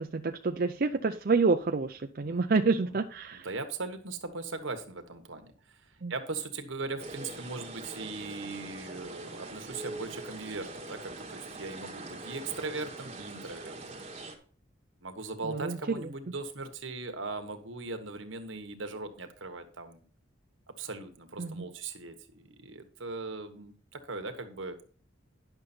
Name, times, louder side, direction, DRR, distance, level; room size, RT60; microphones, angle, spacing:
voice 1, 0.0-3.5 6.0-6.1 15.4-15.8 21.4-21.6, right 4 dB, 45° right, 5 dB, 0.5 m, -28 dB
voice 2, 3.3-14.0 15.0-20.0 20.7-24.8, right 3 dB, 80° right, 7 dB, 1.4 m, -39 dB
sound 1, 7.0-14.4, right 2 dB, 30° right, 1.7 m, -43 dB
10.5 x 6.4 x 4.3 m, 0.43 s
head